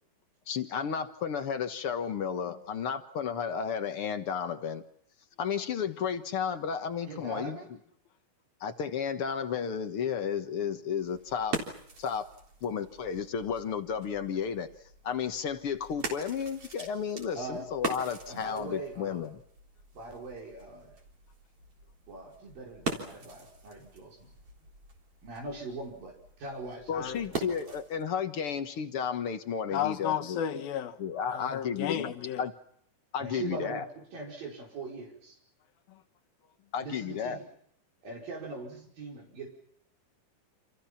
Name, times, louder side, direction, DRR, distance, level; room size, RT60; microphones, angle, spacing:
voice 1, 0.5-4.8 5.4-7.6 8.6-11.6 12.0-12.3 12.6-14.7 15.0-19.4 26.9-30.6 31.0-32.5 33.1-33.9 36.7-37.4, left 7 dB, 55° left, 8 dB, 1.7 m, -33 dB
voice 2, 7.0-7.6 17.4-17.6 18.3-19.2 19.9-20.9 22.1-24.3 25.2-26.1 26.4-27.8 33.2-35.4 36.8-37.4 38.0-39.5, right 3 dB, 75° right, -1 dB, 7.0 m, -41 dB
sound 1, 10.9-28.1, right 3 dB, 40° right, 4.5 m, -42 dB
voice 3, 29.7-31.0 31.3-32.4 35.9-36.0, left 10 dB, 85° left, 8 dB, 3.3 m, -33 dB
29.0 x 27.5 x 5.8 m, 0.68 s
omnidirectional pair, 4.1 m